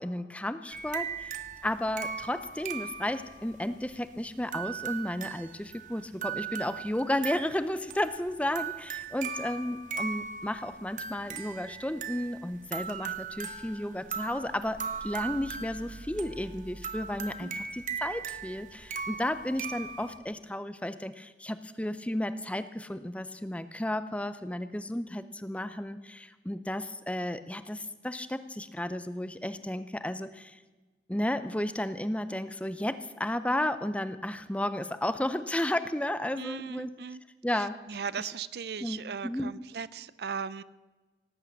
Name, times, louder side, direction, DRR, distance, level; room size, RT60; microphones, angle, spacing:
voice 1, 0.0-30.6 31.1-36.9 37.4-37.8 38.2-38.3 38.8-39.5, left 1 dB, 5° left, 12 dB, 0.5 m, -33 dB
sound 1, 0.7-20.2, right 6 dB, 45° right, 1.0 m, -39 dB
voice 2, 36.4-37.2 37.9-40.6, right 6 dB, 65° right, 17 dB, 0.5 m, -37 dB
18.0 x 8.3 x 8.3 m, 1.2 s
head